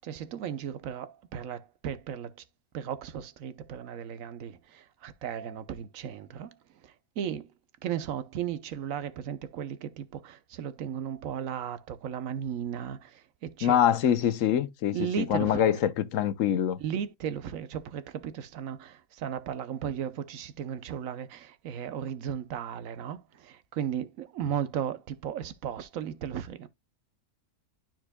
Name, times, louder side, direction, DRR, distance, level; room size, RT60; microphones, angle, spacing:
voice 1, 0.0-2.3 2.7-6.6 6.8-7.5 7.8-13.8 14.9-15.7 16.8-26.7, right 9 dB, 85° right, 1.2 m, -35 dB
voice 2, 13.6-16.8, left 10 dB, 75° left, 1.1 m, -25 dB
12.5 x 4.4 x 2.2 m
omnidirectional pair, 1.4 m